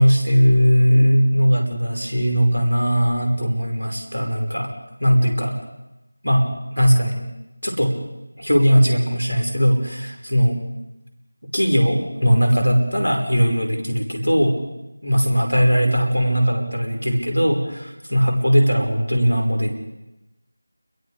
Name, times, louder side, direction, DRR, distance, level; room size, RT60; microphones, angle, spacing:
voice 1, 0.0-4.7 5.0-5.5 6.2-6.5 6.7-7.1 7.6-7.9 8.4-10.6 11.5-14.6 15.0-19.7, equal, 90° left, 3 dB, 5.8 m, -18 dB
29.0 x 22.0 x 5.2 m, 0.94 s
figure-of-eight pair, 170°, 0 cm